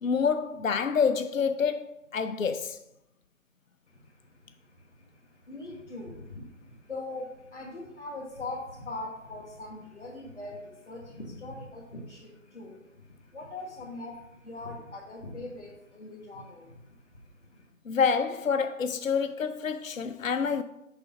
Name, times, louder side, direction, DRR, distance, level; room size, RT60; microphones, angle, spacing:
voice 1, 0.0-2.8 17.9-20.6, left 6 dB, 70° left, 0.6 m, -27 dB
voice 2, 3.9-17.7, left 2 dB, 55° left, 1.6 m, -42 dB
6.7 x 5.9 x 5.5 m
figure-of-eight pair, 165°, 41 cm